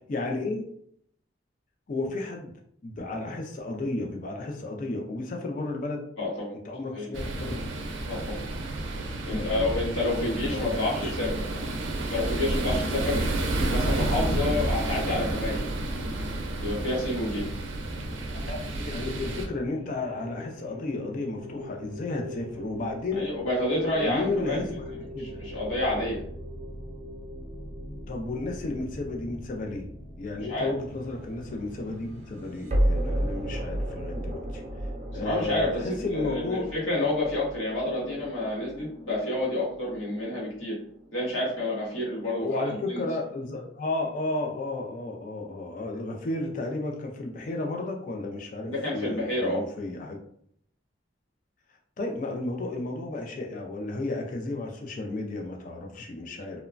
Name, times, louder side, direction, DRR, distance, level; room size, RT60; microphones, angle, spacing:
voice 1, 0.1-0.7 1.9-2.5 2.8-6.0 6.6-7.7 9.3-9.9 10.2-11.2 18.5-23.3 24.0-24.8 25.1-25.4 28.1-29.8 30.2-34.6 35.1-36.7 42.4-50.2 52.0-56.6, left 2 dB, 40° left, 1 dB, 0.3 m, -33 dB
voice 2, 6.2-6.5 6.9-7.1 8.1-8.4 9.3-11.6 12.1-13.3 13.7-15.7 16.6-17.5 23.1-24.6 25.2-26.2 30.5-30.7 35.2-40.7 41.1-42.5 42.9-43.0 48.7-49.6, left 1 dB, 85° left, -6 dB, 1.3 m, -29 dB
sound 1, 7.1-19.5, right 1 dB, 85° right, 0.5 m, -30 dB
sound 2, 15.5-33.7, left 1 dB, 5° right, 0.8 m, -43 dB
sound 3, 30.9-41.9, right 1 dB, 35° right, 0.5 m, -33 dB
3.0 x 2.1 x 2.4 m, 0.66 s
head